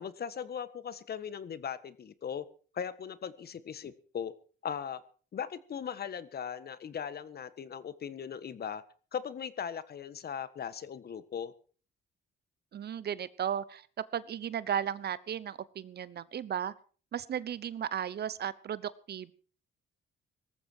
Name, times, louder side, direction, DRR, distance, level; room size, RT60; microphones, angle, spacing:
voice 1, 0.0-2.4 2.7-4.3 4.6-5.0 5.3-8.8 9.1-11.5, left 7 dB, 50° left, 14 dB, 1.5 m, -39 dB
voice 2, 12.7-13.9 14.1-16.7 17.1-19.3, right 9 dB, 55° right, 18 dB, 1.0 m, -35 dB
18.5 x 14.0 x 4.6 m, 0.40 s
cardioid pair, 90°, 20 cm